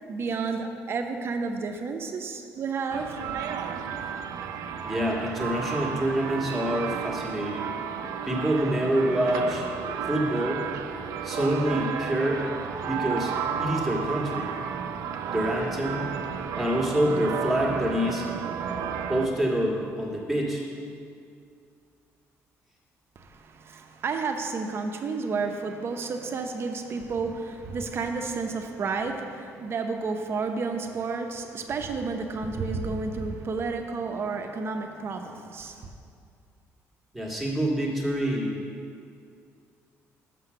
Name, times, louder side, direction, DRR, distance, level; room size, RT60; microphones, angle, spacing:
voice 1, 0.1-3.1 23.2-35.9, right 4 dB, 45° right, 5 dB, 0.7 m, -31 dB
sound 1, 2.9-19.3, right 7 dB, 80° right, 0.5 m, -32 dB
voice 2, 4.8-7.7 8.3-9.7 10.0-10.6 11.2-12.4 12.8-13.3 13.6-14.5 15.3-16.1 16.5-18.2 19.1-20.6 37.1-38.5, right 1 dB, ahead, -4 dB, 1.6 m, -26 dB
6.7 x 5.7 x 6.7 m, 2.4 s
cardioid pair, 115°, 6 cm